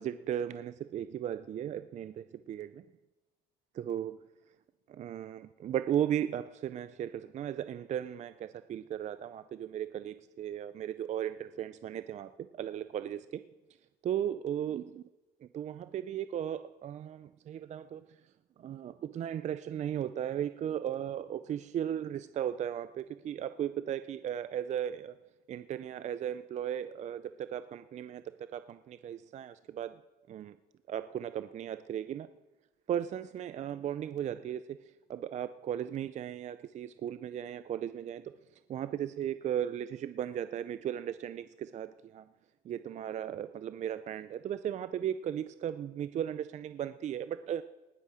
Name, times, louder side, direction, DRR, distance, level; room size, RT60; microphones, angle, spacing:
voice 1, 0.0-2.8 3.7-4.2 4.9-13.4 14.0-15.0 15.5-18.0 18.6-25.1 25.5-28.2 28.5-29.9 30.3-30.6 30.9-32.3 32.9-34.8 35.1-38.3 38.7-42.3 42.6-47.6, right 10 dB, 45° right, 12 dB, 0.4 m, -36 dB
19.0 x 8.3 x 4.9 m, 1.1 s
cardioid pair, 110°, 17 cm